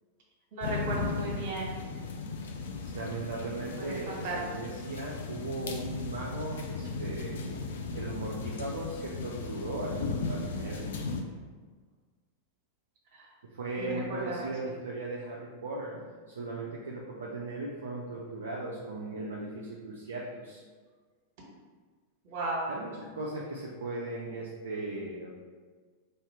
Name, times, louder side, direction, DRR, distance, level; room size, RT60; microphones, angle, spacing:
voice 1, 0.5-1.7 3.8-4.4 13.1-13.3 13.8-14.5 22.2-22.7, right 2 dB, 45° right, -3 dB, 1.4 m, -35 dB
sound 1, 0.6-11.2, left 4 dB, 60° left, 0.4 m, -36 dB
voice 2, 2.9-7.4 7.9-10.9 13.5-20.6 22.7-25.3, right 2 dB, 65° right, -4 dB, 0.5 m, -37 dB
3.3 x 2.8 x 4.5 m, 1.5 s
figure-of-eight pair, 90°, 0 cm